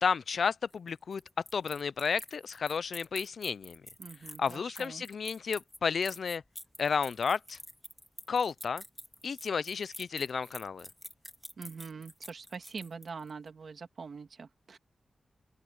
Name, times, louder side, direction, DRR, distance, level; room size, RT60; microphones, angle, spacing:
voice 1, 0.0-1.2 1.5-3.8 4.4-6.4 6.8-7.6 8.3-8.8 9.2-10.9, left 6 dB, 75° left, 0.3 m, -32 dB
sound 1, 0.7-13.3, left 1 dB, 10° left, 2.7 m, -48 dB
voice 2, 4.0-5.0 11.6-14.8, right 5 dB, 65° right, 1.7 m, -44 dB
open air
wide cardioid pair, 140°, 0 cm